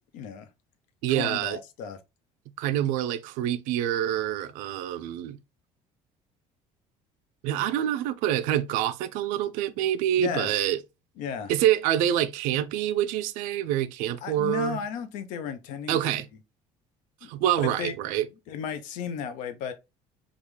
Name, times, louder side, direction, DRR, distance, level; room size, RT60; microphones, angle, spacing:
voice 1, 0.1-0.5 1.1-2.0 10.2-10.6 11.2-11.5 14.2-16.2 17.2-17.3 17.6-17.9 18.5-19.7, left 7 dB, 70° left, 0.6 m, -34 dB
voice 2, 1.0-1.6 2.6-5.4 7.4-10.8 11.5-14.8 15.9-16.3 17.3-18.3, right 11 dB, 85° right, 0.5 m, -26 dB
3.6 x 2.4 x 3.1 m
cardioid pair, 175°, 13 cm